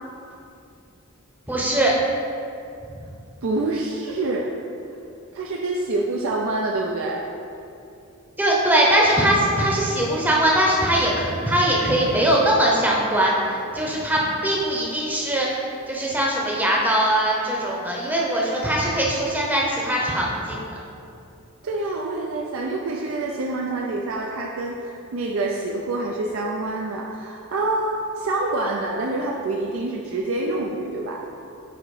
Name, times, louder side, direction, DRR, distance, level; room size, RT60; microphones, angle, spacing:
voice 1, 1.5-1.9 8.4-13.4 13.7-15.6 15.9-20.6, right 1 dB, 10° right, -4 dB, 0.7 m, -21 dB
voice 2, 3.4-4.5 5.3-7.3 21.6-31.3, right 2 dB, 65° right, -1 dB, 0.4 m, -26 dB
7.9 x 2.9 x 4.8 m, 2.6 s
head